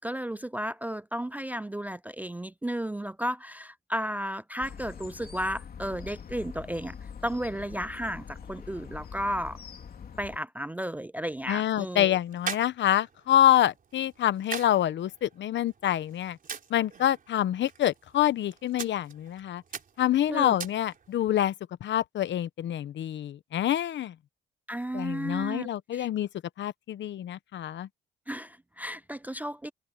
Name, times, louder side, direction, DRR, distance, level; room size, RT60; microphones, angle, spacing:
voice 1, 0.0-7.0 7.2-9.6 10.2-12.2 20.3-20.6 24.7-26.1 28.3-29.7, equal, 10° right, 0.3 m, -33 dB
sound 1, 4.6-10.4, left 7 dB, 50° left, 3.3 m, -44 dB
sound 2, 11.2-21.2, right 6 dB, 45° right, 3.7 m, -43 dB
voice 2, 11.5-16.4 16.7-19.6 20.0-21.5 21.8-24.1 24.9-26.3 26.6-27.9, left 12 dB, 65° left, 1.0 m, -26 dB
cardioid pair, 90°, 20 cm